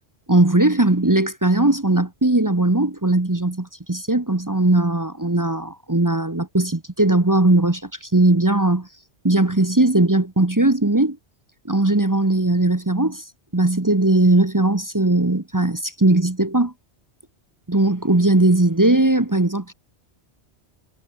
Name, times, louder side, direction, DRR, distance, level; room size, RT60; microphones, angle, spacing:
voice 1, 0.3-8.9 9.2-11.2 11.7-13.2 13.5-16.7 17.7-19.7, right 2 dB, 20° right, 1.0 m, -19 dB
omnidirectional pair, 1.1 m